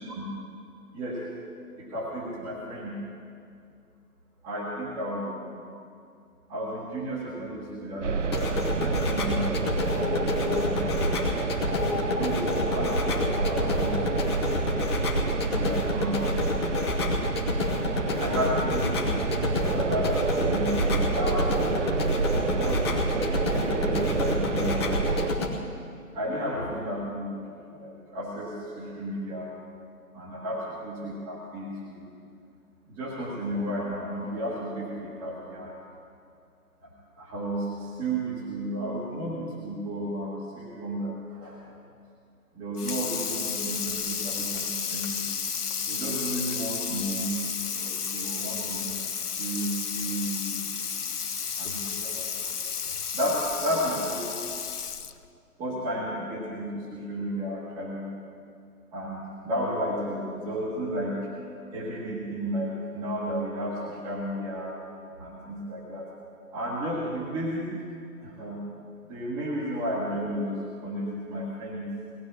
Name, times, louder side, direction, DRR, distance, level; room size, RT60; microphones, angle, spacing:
voice 1, 1.8-3.0 4.4-5.6 6.5-9.6 10.1-11.3 12.2-14.4 15.2-16.9 18.2-19.1 19.6-20.1 20.4-21.5 22.3-23.1 23.5-25.2 26.1-29.5 30.1-32.0 32.9-35.7 36.8-36.9 37.2-41.6 42.5-45.3 45.9-47.3 47.8-49.0 49.4-50.7 51.6-52.6 53.1-54.3 55.6-58.1 58.9-61.3 61.7-64.7 65.2-66.1 66.5-67.7 68.2-68.6 69.1-71.9, equal, 10° right, -4 dB, 1.4 m, -33 dB
sound 1, 8.0-25.3, right 5 dB, 55° right, 0.5 m, -29 dB
sound 2, 8.2-25.5, left 3 dB, 15° left, 1.0 m, -29 dB
Water tap faucet / Sink (filling or washing), 42.8-55.3, left 6 dB, 75° left, 0.9 m, -32 dB
18.5 x 10.5 x 7.3 m, 2.4 s
figure-of-eight pair, 145°, 46 cm